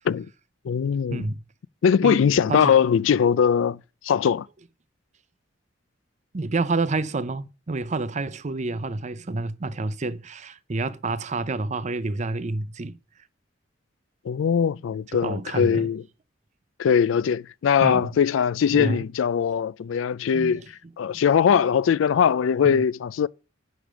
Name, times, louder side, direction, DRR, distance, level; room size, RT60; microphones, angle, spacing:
voice 1, 0.6-1.2 1.8-3.8 4.0-4.5 14.3-16.0 16.8-20.6 21.0-23.3, left 7 dB, 80° left, 0.3 m, -21 dB
voice 2, 6.3-13.0 15.2-15.9 17.8-18.1 18.7-19.0 20.3-20.6 21.1-21.2 22.6-22.8, right 3 dB, 35° right, 0.6 m, -28 dB
8.9 x 5.0 x 6.2 m
head